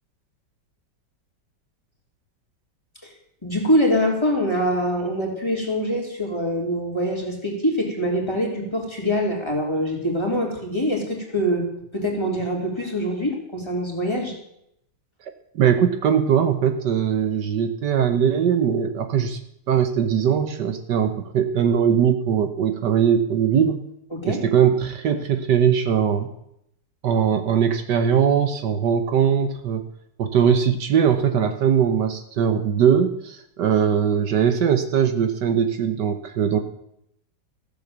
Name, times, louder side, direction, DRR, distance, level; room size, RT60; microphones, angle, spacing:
voice 1, 3.4-11.6 11.9-14.3 24.1-24.4, equal, 15° left, -1 dB, 3.4 m, -24 dB
voice 2, 15.2-19.4 19.7-23.8 24.3-26.3 27.0-29.8 30.2-36.6, right 8 dB, 70° right, 8 dB, 1.5 m, -20 dB
15.5 x 8.1 x 7.4 m, 0.76 s
omnidirectional pair, 2.0 m